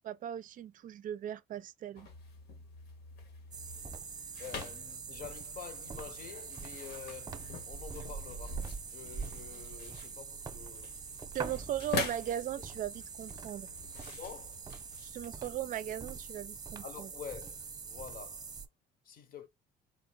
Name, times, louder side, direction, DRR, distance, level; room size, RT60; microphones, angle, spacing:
voice 1, 0.0-2.1 11.3-13.7 15.0-17.1, right 11 dB, 55° right, 0.5 m, -38 dB
sound 1, 2.0-15.3, left 5 dB, 75° left, 1.4 m, -45 dB
sound 2, 3.5-18.7, right 5 dB, 20° right, 0.9 m, -44 dB
voice 2, 4.4-11.0 14.1-14.7 16.8-17.6 17.8-18.6 19.0-19.5, left 7 dB, 60° left, 1.0 m, -48 dB
4.3 x 2.5 x 4.4 m
cardioid pair, 110°, 17 cm